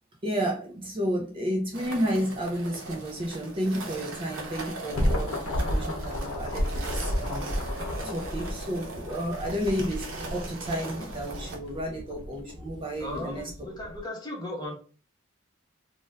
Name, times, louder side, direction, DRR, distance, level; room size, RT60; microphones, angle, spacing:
voice 1, 0.2-7.5 8.0-13.5, equal, 25° right, 0 dB, 0.4 m, -31 dB
sound 1, 1.7-11.6, right 2 dB, 65° right, 0.8 m, -39 dB
sound 2, 4.7-14.0, equal, 90° left, 0.7 m, -32 dB
voice 2, 13.0-14.7, left 1 dB, 20° left, -1 dB, 0.8 m, -36 dB
2.5 x 2.2 x 3.2 m, 0.38 s
head